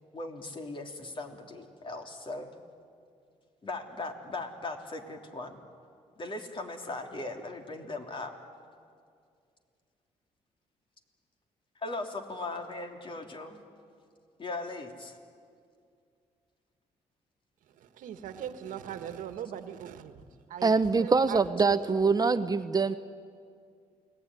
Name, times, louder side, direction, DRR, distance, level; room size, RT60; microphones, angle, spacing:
voice 1, 0.1-2.5 3.6-5.6 6.2-8.3 11.8-13.6 14.4-15.2, left 2 dB, 40° left, 4 dB, 3.1 m, -38 dB
voice 2, 17.8-20.2 20.5-22.2, right 9 dB, 85° right, 9 dB, 1.5 m, -40 dB
voice 3, 20.6-23.0, right 4 dB, 30° right, 11 dB, 0.8 m, -24 dB
29.5 x 19.0 x 9.8 m, 2.3 s
cardioid pair, 95°, 13 cm